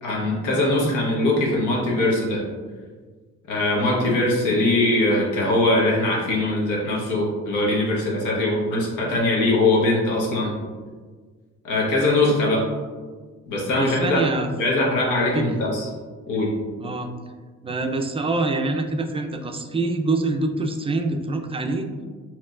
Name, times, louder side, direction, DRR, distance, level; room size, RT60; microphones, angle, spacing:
voice 1, 0.0-2.4 3.5-10.5 11.6-12.6 13.5-14.2 14.6-15.9 16.3-16.5, left 2 dB, 85° left, -3 dB, 1.2 m, -21 dB
voice 2, 13.8-14.5 15.3-15.4 16.8-17.1 17.6-21.9, right 3 dB, 20° right, 5 dB, 0.4 m, -25 dB
4.4 x 2.9 x 2.4 m, 1.5 s
cardioid pair, 90°, 30 cm